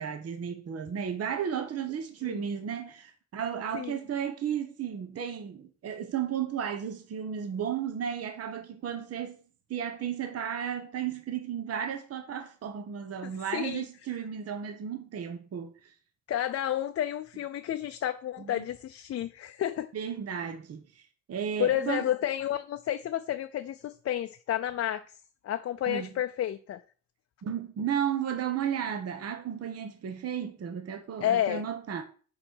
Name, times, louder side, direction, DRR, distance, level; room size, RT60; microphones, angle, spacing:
voice 1, 0.0-9.4 9.7-15.9 18.4-18.7 19.9-22.1 25.9-26.1 27.4-32.0, right 8 dB, 55° right, 1.0 m, -34 dB
voice 2, 13.2-13.8 16.3-19.9 21.6-25.0 25.4-26.8 31.2-31.6, left 11 dB, 50° left, 0.5 m, -31 dB
5.9 x 5.0 x 6.2 m
cardioid pair, 90°, 30 cm